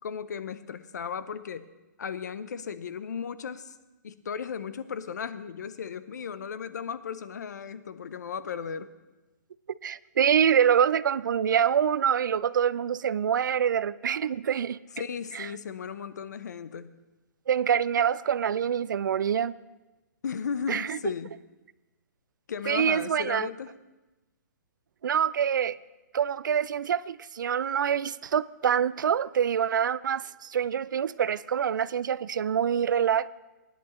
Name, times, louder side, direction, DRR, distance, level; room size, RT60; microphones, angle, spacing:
voice 1, 0.0-1.7 2.0-3.7 4.0-8.9 15.0-16.9 20.2-21.3 22.5-23.7, left 6 dB, 65° left, 0.7 m, -35 dB
voice 2, 9.8-14.8 15.3-15.5 17.5-19.6 20.7-21.0 22.7-23.5 25.0-25.8 26.1-33.3, right 8 dB, 80° right, 0.4 m, -25 dB
17.5 x 10.5 x 3.1 m
hypercardioid pair, 175°, 10 cm